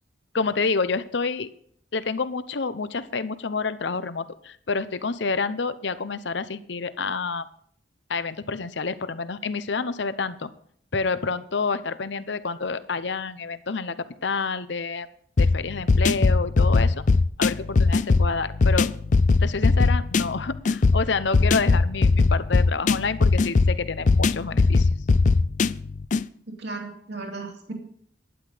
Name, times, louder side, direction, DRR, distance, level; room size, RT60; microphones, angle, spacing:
voice 1, 0.3-1.5 1.9-7.5 8.1-10.5 10.9-15.1 15.4-17.0 17.4-18.9 19.4-24.9, left 4 dB, 70° left, 14 dB, 0.8 m, -28 dB
sound 1, 15.4-26.3, left 3 dB, 40° left, 0.4 m, -20 dB
voice 2, 26.6-27.7, right 3 dB, 60° right, 2 dB, 2.5 m, -35 dB
12.0 x 10.0 x 5.1 m, 0.62 s
head